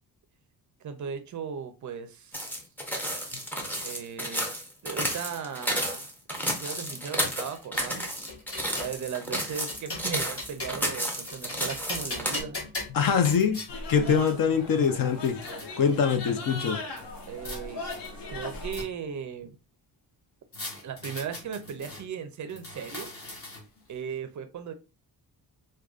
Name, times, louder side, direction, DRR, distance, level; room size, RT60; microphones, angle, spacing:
voice 1, 0.8-2.6 3.8-4.5 4.8-6.1 6.6-8.1 8.8-12.6 17.3-17.9 18.3-19.5 20.8-23.1 23.9-24.7, right 7 dB, 45° right, 0.4 m, -37 dB
sound 1, 2.3-12.4, equal, 5° left, 0.5 m, -32 dB
sound 2, 7.2-8.9 9.5-10.9 11.3-13.7 14.5-14.6 14.8-15.7 17.0-17.6 17.9-19.2 20.5-22.0 22.5-23.8, left 2 dB, 35° left, 1.0 m, -40 dB
voice 2, 12.9-13.6 13.9-15.4 15.8-16.8, left 6 dB, 55° left, 0.6 m, -23 dB
sound 3, 13.7-18.8, left 2 dB, 75° left, 1.1 m, -39 dB
4.8 x 2.2 x 2.4 m
wide cardioid pair, 165°, 42 cm